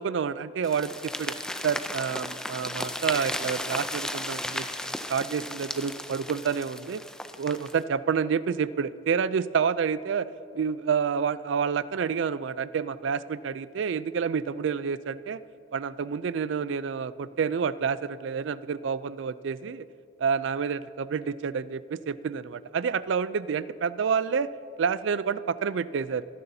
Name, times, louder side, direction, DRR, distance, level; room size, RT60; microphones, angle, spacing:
voice 1, 0.0-1.3 1.6-7.0 7.4-10.3 10.5-15.4 15.7-19.9 20.2-24.5 24.8-26.3, right 6 dB, 70° right, 16 dB, 0.4 m, -28 dB
sound 1, 0.6-7.8, left 1 dB, 5° left, 0.4 m, -35 dB
25.5 x 11.0 x 2.7 m, 2.7 s
head